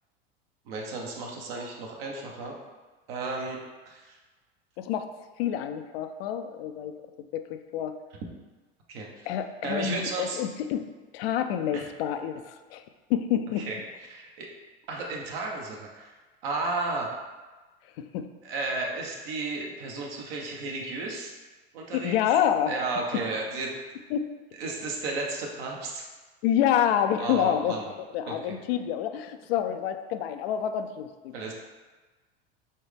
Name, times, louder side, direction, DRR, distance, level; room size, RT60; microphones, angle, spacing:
voice 1, 0.6-2.6 3.1-3.6 3.9-4.2 8.9-9.3 9.6-10.4 11.7-11.9 13.6-13.8 14.1-14.5 14.9-16.1 16.4-17.2 18.4-21.3 21.7-22.2 22.6-23.7 24.6-26.0 27.2-27.9 28.3-28.6 31.3-31.5, right 3 dB, 70° right, -1 dB, 1.1 m, -33 dB
voice 2, 4.8-5.1 5.4-6.9 7.3-8.0 9.3-10.9 11.1-12.8 13.1-13.7 18.0-18.3 21.9-22.8 24.1-24.3 26.4-27.7 28.1-31.3, left 10 dB, 70° left, 8 dB, 0.5 m, -27 dB
4.3 x 3.5 x 3.4 m, 1.3 s
hypercardioid pair, 95°, 31 cm